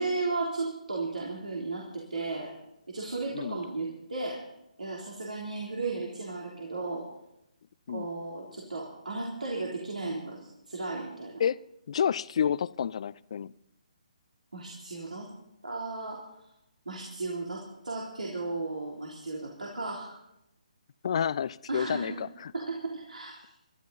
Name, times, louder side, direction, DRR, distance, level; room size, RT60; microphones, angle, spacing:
voice 1, 0.0-2.5 2.9-4.4 4.8-7.0 7.9-11.4 14.5-15.3 15.6-16.2 16.8-20.1 21.7-22.2 22.5-23.5, right 3 dB, 80° right, -2 dB, 3.3 m, -35 dB
voice 2, 3.3-3.6 7.9-8.1 11.4-11.6 11.9-13.5 21.0-22.5, left 8 dB, 50° left, 20 dB, 0.5 m, -29 dB
24.0 x 13.0 x 4.0 m, 0.84 s
figure-of-eight pair, 145°, 4 cm